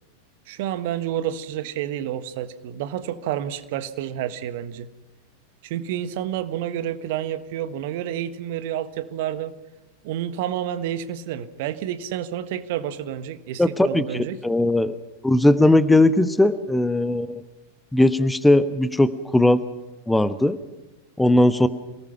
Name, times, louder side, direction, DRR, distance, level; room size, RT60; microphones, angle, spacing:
voice 1, 0.5-4.9 5.6-9.5 10.0-14.4, right 11 dB, 50° right, 12 dB, 1.4 m, -29 dB
voice 2, 13.6-14.9 15.2-17.4 17.9-19.6 20.1-20.6 21.2-21.7, left 1 dB, 5° left, 14 dB, 1.1 m, -18 dB
27.0 x 19.0 x 5.8 m, 1.0 s
figure-of-eight pair, 90°, 0 cm